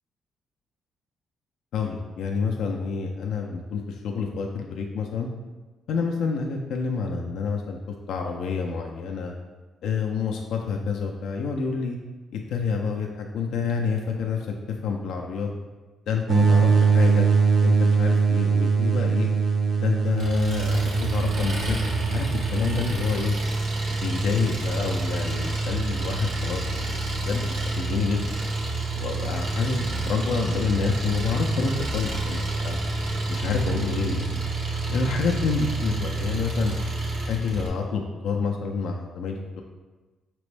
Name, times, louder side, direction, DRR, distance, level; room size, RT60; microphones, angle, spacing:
voice 1, 1.7-5.3 5.9-7.8 8.1-9.3 9.8-12.0 12.3-14.6 14.8-15.5 16.1-17.3 17.6-19.3 19.8-21.8 22.1-23.3 24.0-28.3 28.9-32.8 33.3-34.4 34.9-36.7 37.3-39.6, left 5 dB, 75° left, 1 dB, 0.4 m, -28 dB
sound 1, 16.3-22.9, right 5 dB, 55° right, 0.5 m, -21 dB
Engine, 20.2-37.7, right 2 dB, 80° right, 0.9 m, -28 dB
5.1 x 3.0 x 3.2 m, 1.2 s
cardioid pair, 90°, 0 cm